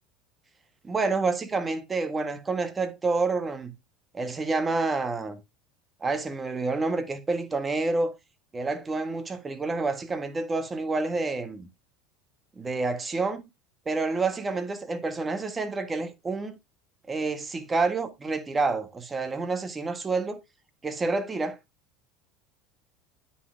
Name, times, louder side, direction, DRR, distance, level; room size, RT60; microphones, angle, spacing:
voice 1, 0.8-3.8 4.1-5.4 6.0-8.1 8.5-11.7 12.6-13.4 13.8-16.6 17.1-20.4 20.8-21.6, right 3 dB, 20° right, 1.6 m, -28 dB
9.6 x 5.8 x 3.3 m
hypercardioid pair, 90°, 0 cm